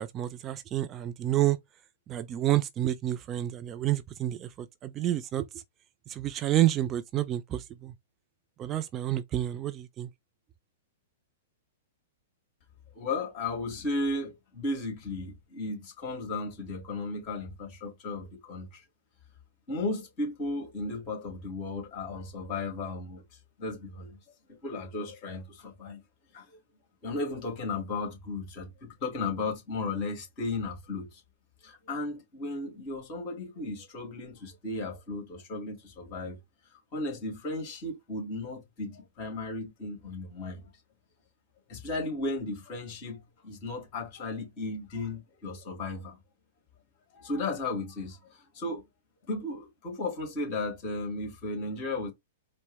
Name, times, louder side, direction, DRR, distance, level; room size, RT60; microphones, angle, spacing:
voice 1, 0.0-1.6 2.1-5.5 6.1-7.9 8.6-10.1, right 13 dB, 30° right, 0.4 m, -29 dB
voice 2, 12.9-18.8 19.7-23.2 23.6-24.2 24.5-26.0 26.3-26.4 27.0-31.2 31.6-36.4 36.9-40.7 41.7-46.2 47.1-48.9 49.3-52.1, left 2 dB, 40° left, 2.2 m, -35 dB
4.3 x 2.0 x 3.4 m
hypercardioid pair, 110°, 0 cm